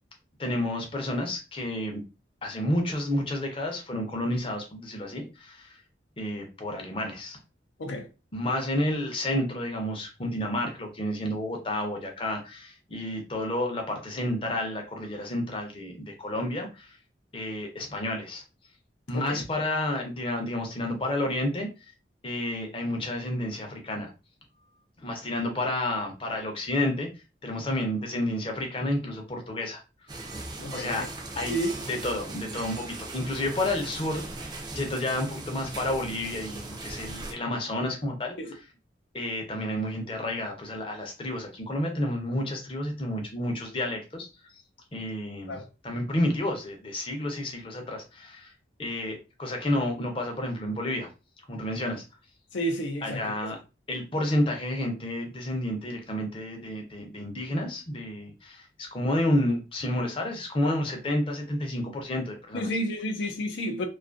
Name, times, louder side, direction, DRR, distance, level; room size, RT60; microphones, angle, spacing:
voice 1, 0.4-2.0 2.4-5.8 6.2-7.4 8.3-17.0 17.3-18.4 19.1-21.7 22.2-24.1 25.0-27.1 27.4-29.8 30.7-31.1 31.4-38.7 39.1-44.3 44.9-48.5 48.8-51.1 51.5-52.0 53.0-53.6 53.9-62.7, left 1 dB, 30° left, 0.6 m, -30 dB
sound 1, 30.1-37.3, right 2 dB, 25° right, 0.3 m, -39 dB
voice 2, 30.6-31.1 31.4-31.7 38.4-38.5 45.5-45.6 52.5-53.2 62.5-63.9, equal, 90° left, 0.5 m, -31 dB
2.5 x 2.3 x 2.4 m
head